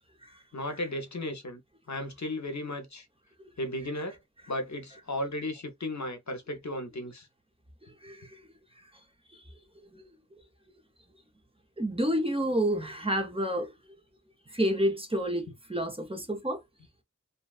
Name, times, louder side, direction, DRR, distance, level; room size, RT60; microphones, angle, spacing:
voice 1, 0.5-1.6 1.9-3.0 3.6-4.2 4.5-7.3, left 1 dB, 60° left, 0.7 m, -35 dB
voice 2, 11.8-13.7 14.5-16.6, equal, 15° right, 0.7 m, -29 dB
2.5 x 2.2 x 2.3 m
wide cardioid pair, 40°, 33 cm